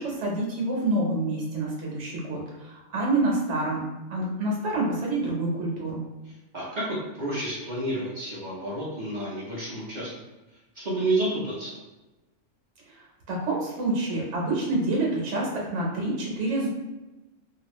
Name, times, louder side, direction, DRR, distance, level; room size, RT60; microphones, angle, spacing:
voice 1, 0.0-3.8 4.1-6.0 13.3-16.7, right 2 dB, 70° right, -2 dB, 1.2 m, -27 dB
voice 2, 6.5-10.1 10.8-11.8, right 1 dB, 45° right, -7 dB, 0.7 m, -30 dB
2.9 x 2.5 x 3.0 m, 1.1 s
omnidirectional pair, 1.3 m